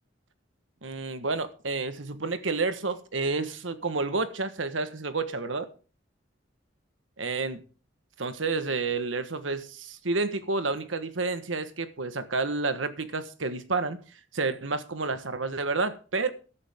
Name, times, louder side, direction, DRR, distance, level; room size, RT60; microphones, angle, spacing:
voice 1, 0.8-5.7 7.2-7.6 8.2-14.0 14.3-16.3, right 3 dB, 85° right, 1.4 m, -30 dB
14.5 x 11.5 x 3.6 m
head